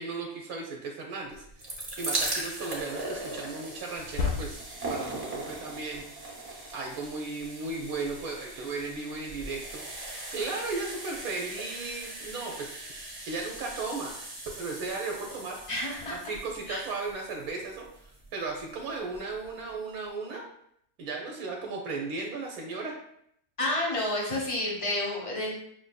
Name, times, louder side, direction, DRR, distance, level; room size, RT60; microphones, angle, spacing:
voice 1, 0.0-4.6 4.9-6.4 6.7-14.1 14.6-15.6 16.1-20.4 21.0-23.0, right 3 dB, 80° right, 0 dB, 1.1 m, -36 dB
sound 1, 1.3-18.4 19.1-19.2 19.4-19.5, right 2 dB, 35° right, 0.7 m, -39 dB
sound 2, 1.7-1.9 3.9-4.9, left 5 dB, 85° left, 1.1 m, -32 dB
voice 2, 15.7-16.1 16.7-16.8 23.6-25.5, left 1 dB, 35° left, -2 dB, 0.6 m, -30 dB
5.8 x 2.5 x 2.2 m, 0.73 s
omnidirectional pair, 1.5 m